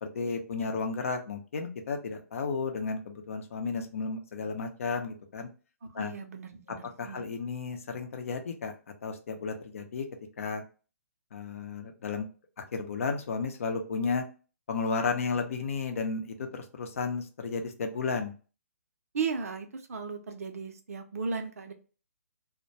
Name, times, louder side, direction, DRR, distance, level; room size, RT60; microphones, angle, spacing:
voice 1, 0.0-5.5 5.9-6.1 7.0-8.7 9.0-10.1 10.4-10.6 11.3-12.3 12.7-14.3 14.7-18.3, left 4 dB, 60° left, 5 dB, 0.6 m, -33 dB
voice 2, 5.8-7.3 19.1-21.7, right 5 dB, 65° right, 6 dB, 0.6 m, -36 dB
2.2 x 2.2 x 2.7 m, 0.35 s
hypercardioid pair, 135°, 8 cm